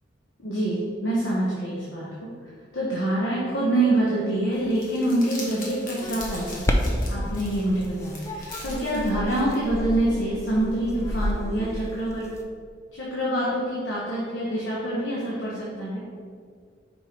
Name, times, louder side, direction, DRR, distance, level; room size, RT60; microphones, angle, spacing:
voice 1, 0.4-2.3 2.7-12.3 13.0-16.0, right 1 dB, 80° left, -6 dB, 1.1 m, -26 dB
Crumpling crinkling, 4.5-9.6, left 2 dB, 50° left, 1.3 m, -42 dB
sound 1, 6.0-12.4, equal, 15° left, 0.4 m, -30 dB
5.4 x 4.5 x 4.5 m, 2.1 s
head